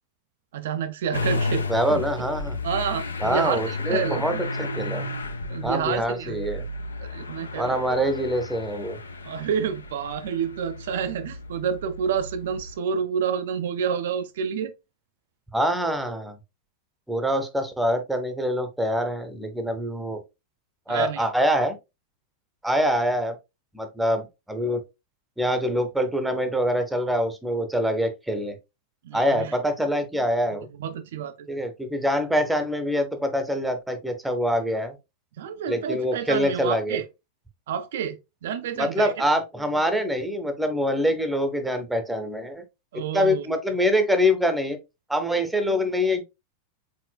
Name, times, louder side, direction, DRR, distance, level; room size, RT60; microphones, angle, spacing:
voice 1, 0.5-2.1 2.6-4.2 5.5-6.5 7.0-7.8 9.2-14.7 20.9-21.3 29.0-29.6 30.8-31.6 35.4-37.0 37.7-39.1 42.9-43.5, right 7 dB, 55° right, 0.3 m, -29 dB
Motor vehicle (road) / Engine starting, 1.1-12.8, left 2 dB, 75° left, 0.5 m, -33 dB
voice 2, 1.7-2.6 3.2-5.1 5.6-6.6 7.5-9.0 15.5-16.4 17.1-20.2 20.9-21.8 22.6-23.3 23.7-24.8 25.4-28.6 29.1-30.7 31.5-35.0 35.7-37.0 38.8-42.6 43.1-44.8 45.1-46.2, equal, 5° right, 0.7 m, -25 dB
4.3 x 3.7 x 2.2 m
figure-of-eight pair, 90°, 0 cm